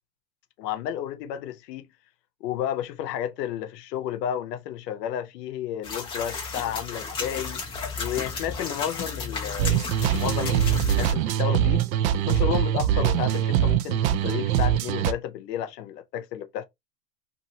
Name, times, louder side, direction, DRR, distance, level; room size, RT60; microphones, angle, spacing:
voice 1, 0.6-1.9 2.4-7.6 8.0-11.8 12.2-16.7, left 10 dB, 80° left, 0.7 m, -32 dB
sound 1, 5.8-11.1, left 5 dB, 15° left, 0.3 m, -33 dB
sound 2, 9.6-15.1, right 10 dB, 60° right, 0.5 m, -23 dB
2.7 x 2.6 x 2.7 m
supercardioid pair, 135°, 48 cm